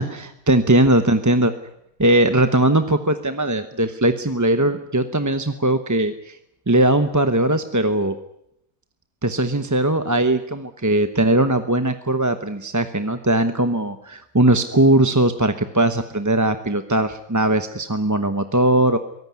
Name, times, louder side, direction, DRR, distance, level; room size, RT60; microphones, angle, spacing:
voice 1, 0.0-1.5 2.0-6.4 6.7-8.2 9.2-19.0, right 1 dB, 15° right, 9 dB, 0.8 m, -19 dB
23.0 x 17.5 x 9.6 m, 0.80 s
omnidirectional pair, 1.5 m